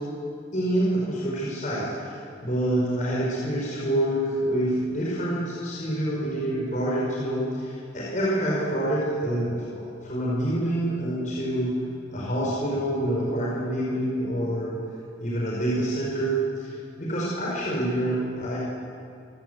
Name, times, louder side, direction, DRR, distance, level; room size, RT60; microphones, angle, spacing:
voice 1, 0.5-11.7 12.1-14.7 15.2-18.6, right 1 dB, 45° left, -5 dB, 5.2 m, -27 dB
25.0 x 18.5 x 8.2 m, 2.5 s
head